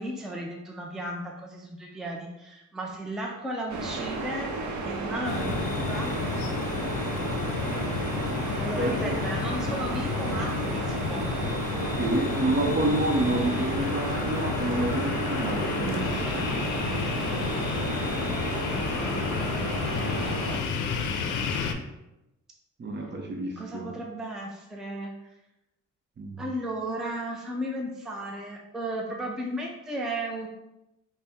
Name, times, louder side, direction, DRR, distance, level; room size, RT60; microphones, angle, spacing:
voice 1, 0.0-4.5 4.8-6.1 8.6-11.3 23.6-25.1 26.4-30.5, right 1 dB, ahead, -1 dB, 0.5 m, -35 dB
sound 1, 3.7-20.6, right 3 dB, 75° right, 0.7 m, -33 dB
sound 2, 5.2-21.7, left 5 dB, 85° left, 0.5 m, -31 dB
voice 2, 8.8-9.1 12.0-16.7 22.8-23.9 26.2-26.4, right 2 dB, 35° right, 2 dB, 0.7 m, -29 dB
4.0 x 2.1 x 3.6 m, 0.93 s
cardioid pair, 90°, 30 cm